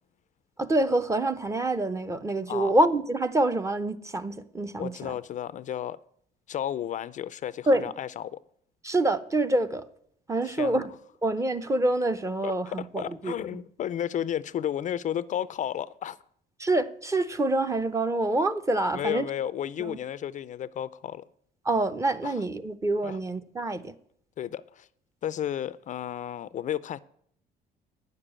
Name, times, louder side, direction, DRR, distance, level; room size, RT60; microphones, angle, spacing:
voice 1, 0.6-5.1 7.7-7.8 8.8-9.8 10.3-10.9 11.2-13.6 16.6-19.3 19.8-20.0 21.6-23.9, right 2 dB, 15° right, 0.7 m, -26 dB
voice 2, 4.8-6.0 6.5-8.4 10.4-10.9 12.4-16.2 18.9-21.3 22.2-22.3 23.0-23.2 24.4-24.9 25.2-27.0, left 10 dB, 45° left, 0.4 m, -33 dB
9.6 x 6.8 x 8.7 m
cardioid pair, 110°, 17 cm